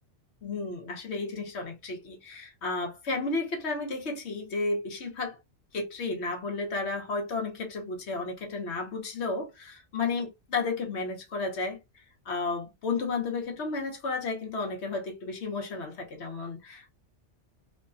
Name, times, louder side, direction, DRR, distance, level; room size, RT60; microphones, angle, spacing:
voice 1, 0.4-5.4 5.7-11.8 12.2-16.9, left 3 dB, 70° left, 1.2 m, -32 dB
3.1 x 2.2 x 2.4 m
omnidirectional pair, 1.2 m